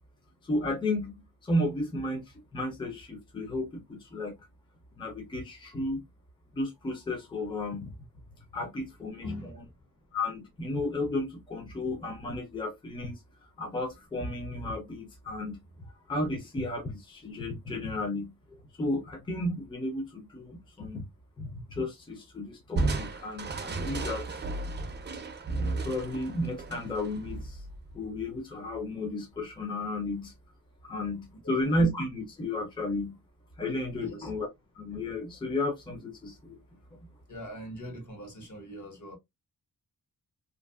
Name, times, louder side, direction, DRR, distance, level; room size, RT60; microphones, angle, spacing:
voice 1, 0.4-1.1 1.4-2.2 2.5-4.3 5.0-6.0 6.5-7.9 8.5-9.3 10.1-13.2 13.6-15.6 16.1-21.0 21.4-24.3 25.8-27.6 27.9-30.3 30.8-33.1 33.6-34.5 34.8-36.6, left 1 dB, 15° left, 0.6 m, -33 dB
voice 2, 9.2-9.6 31.4-31.6 33.9-34.3 37.3-39.2, equal, 55° left, 1.2 m, -41 dB
Crushing, 22.8-28.1, right 3 dB, 30° right, 0.4 m, -34 dB
2.6 x 2.6 x 2.3 m
wide cardioid pair, 165°, 34 cm